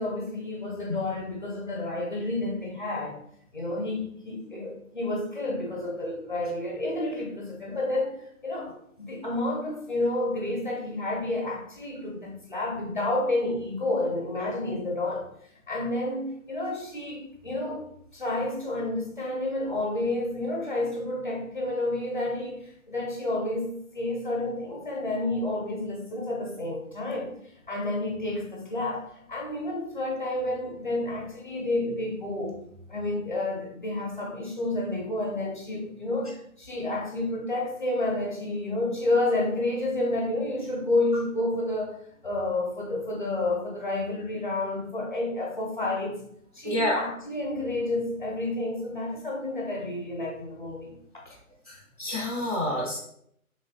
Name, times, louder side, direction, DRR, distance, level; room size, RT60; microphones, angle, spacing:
voice 1, 0.0-3.2 3.5-15.3 15.7-17.9 18.1-27.3 27.7-32.6 32.9-42.0 42.2-46.2 46.5-51.0 52.5-52.7, left 2 dB, 35° left, -1 dB, 0.5 m, -30 dB
voice 2, 46.6-47.0 52.0-53.0, left 1 dB, 30° right, -6 dB, 0.5 m, -27 dB
3.1 x 2.8 x 2.6 m, 0.70 s
figure-of-eight pair, 140°, 43 cm